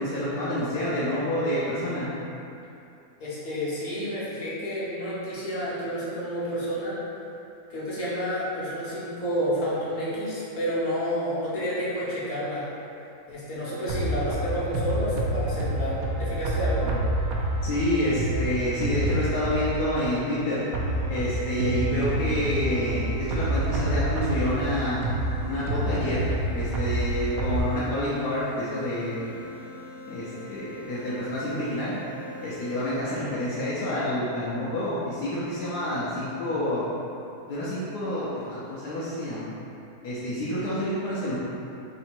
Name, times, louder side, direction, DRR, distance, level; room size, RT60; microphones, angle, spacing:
voice 1, 0.0-2.1 17.6-20.6 21.1-25.2 25.4-26.2 26.5-29.3 30.1-31.9 32.4-37.0 37.5-39.5 40.0-41.4, left 1 dB, 85° left, -10 dB, 1.3 m, -28 dB
voice 2, 3.2-6.9 7.7-12.6 13.3-16.9, equal, 65° left, -9 dB, 1.5 m, -30 dB
sound 1, 13.5-33.2, left 2 dB, 25° right, 0.6 m, -43 dB
sound 2, 13.9-19.9 20.7-27.6, right 1 dB, 70° right, 1.0 m, -28 dB
3.4 x 2.8 x 4.3 m, 2.7 s
omnidirectional pair, 1.6 m